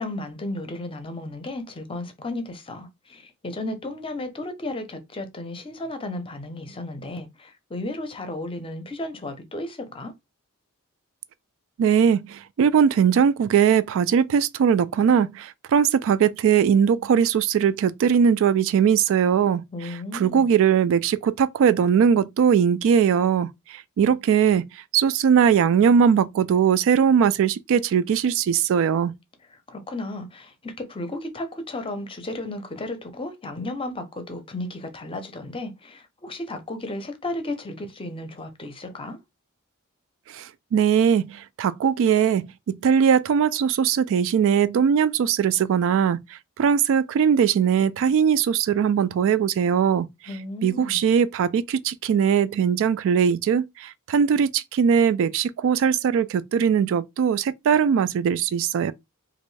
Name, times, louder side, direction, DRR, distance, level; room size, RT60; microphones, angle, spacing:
voice 1, 0.0-10.1 19.7-20.5 29.7-39.2 50.3-51.0, left 2 dB, 25° left, 0.6 m, -34 dB
voice 2, 11.8-19.6 20.1-23.5 24.0-24.7 24.9-29.1 40.3-40.4 40.7-46.2 46.6-50.1 50.6-58.9, right 7 dB, 65° right, 0.3 m, -20 dB
3.0 x 2.6 x 3.1 m
head